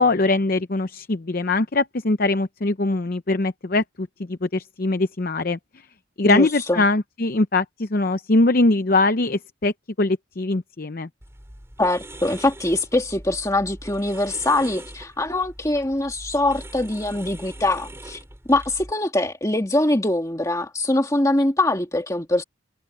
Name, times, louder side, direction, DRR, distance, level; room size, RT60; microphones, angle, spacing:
voice 1, 0.0-5.6 6.2-9.7 10.0-11.1, left 2 dB, 50° left, 0.7 m, -22 dB
voice 2, 6.2-6.8 11.8-18.2 18.5-22.4, left 1 dB, 15° left, 2.3 m, -23 dB
sound 1, 11.2-18.9, right 1 dB, 15° right, 5.6 m, -41 dB
head